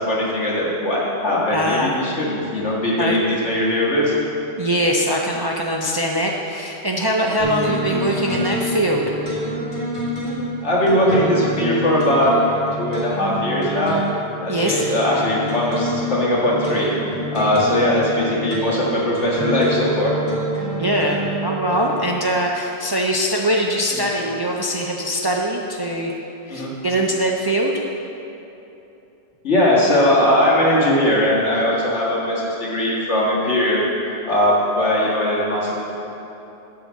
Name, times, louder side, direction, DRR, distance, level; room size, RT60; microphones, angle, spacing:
voice 1, 0.0-4.1 7.8-8.0 10.6-12.3 12.7-14.0 14.4-16.9 17.3-20.1 23.9-24.1 26.5-26.7 29.4-33.8 34.3-35.9, left 1 dB, 90° left, -5 dB, 2.1 m, -20 dB
voice 2, 1.5-1.9 3.0-3.2 4.6-9.1 14.5-14.9 20.8-26.1 26.5-27.8, equal, 35° right, 0 dB, 0.4 m, -22 dB
sound 1, 7.4-22.2, equal, 45° left, 1.9 m, -27 dB
10.5 x 3.8 x 7.3 m, 2.9 s
omnidirectional pair, 1.2 m